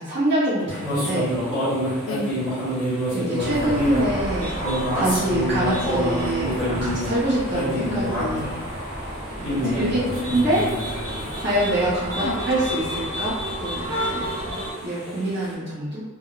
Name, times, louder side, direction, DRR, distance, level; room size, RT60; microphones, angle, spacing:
voice 1, 0.0-1.4 3.1-4.6 4.9-8.6 9.5-10.7 11.3-14.2 14.8-16.0, right 1 dB, 50° right, -10 dB, 0.7 m, -25 dB
sound 1, 0.7-15.5, equal, 5° left, 1.1 m, -28 dB
voice 2, 2.0-2.6 9.6-10.3 12.2-12.4 14.1-14.7, left 2 dB, 70° left, 3 dB, 0.4 m, -31 dB
sound 2, 3.4-14.7, equal, 80° right, 0.8 m, -31 dB
2.2 x 2.1 x 3.7 m, 1.3 s
head